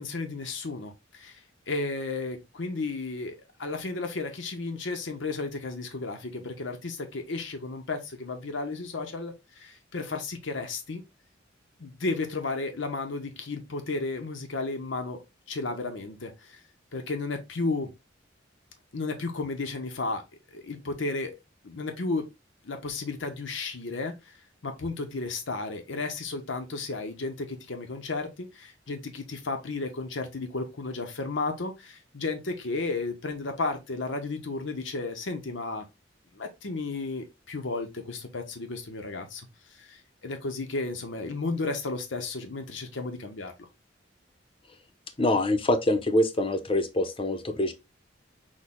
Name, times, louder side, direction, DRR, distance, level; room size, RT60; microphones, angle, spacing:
voice 1, 0.0-1.4 1.7-11.0 11.8-15.2 15.5-16.6 16.9-17.9 18.9-20.2 20.5-21.4 21.6-22.3 22.6-24.2 24.6-35.8 36.3-43.7, left 3 dB, 75° left, 0.8 m, -33 dB
voice 2, 45.2-47.7, left 1 dB, 30° left, 0.7 m, -25 dB
6.3 x 2.2 x 3.7 m
head